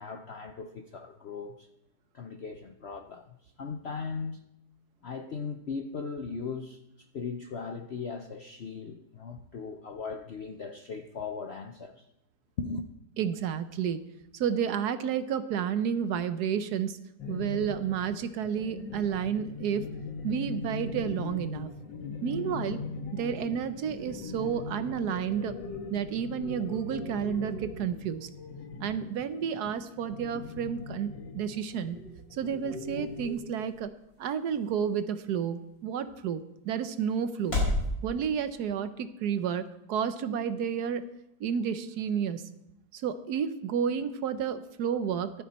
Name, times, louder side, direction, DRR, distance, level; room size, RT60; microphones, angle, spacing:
voice 1, 0.0-1.7 2.1-4.4 5.0-12.1 12.6-12.9, left 5 dB, 65° left, 0.6 m, -38 dB
voice 2, 13.2-14.0 14.3-17.0 17.3-19.9 20.2-21.7 22.2-22.8 23.1-25.5 25.9-28.3 28.8-32.0 32.3-33.9 34.2-37.6 38.0-41.0 41.4-42.4 42.9-45.3, right 8 dB, 65° right, 1.2 m, -31 dB
sound 1, 17.2-33.4, left 4 dB, 85° left, 2.0 m, -40 dB
sound 2, 31.6-37.9, left 2 dB, 50° left, 5.6 m, -37 dB
14.5 x 12.0 x 4.2 m
omnidirectional pair, 1.9 m